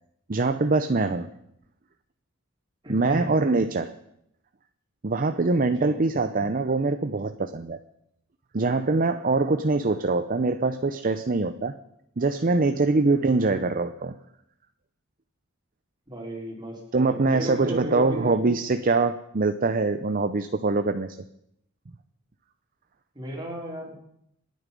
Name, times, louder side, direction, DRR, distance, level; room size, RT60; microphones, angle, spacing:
voice 1, 0.3-1.3 2.9-3.9 5.0-7.8 8.5-11.7 12.2-14.1 16.9-21.2, right 3 dB, 40° right, 9 dB, 0.6 m, -23 dB
voice 2, 2.8-3.3 5.5-6.0 13.2-13.5 16.1-18.3 23.1-23.9, equal, 20° right, -2 dB, 3.7 m, -35 dB
26.5 x 9.4 x 5.3 m, 0.77 s
head